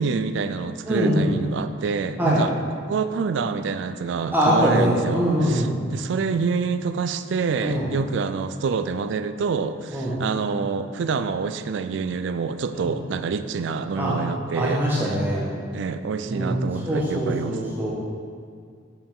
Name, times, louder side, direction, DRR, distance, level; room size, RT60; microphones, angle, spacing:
voice 1, 0.0-2.5 2.9-15.2 15.7-17.6, right 5 dB, 60° right, 10 dB, 0.3 m, -27 dB
voice 2, 0.9-1.3 2.2-2.4 4.3-5.7 7.6-7.9 9.9-10.2 12.7-12.8 13.9-14.2 14.6-15.4 16.3-16.6 16.8-17.9, equal, 10° right, -6 dB, 1.2 m, -22 dB
7.0 x 5.4 x 3.6 m, 2.2 s
head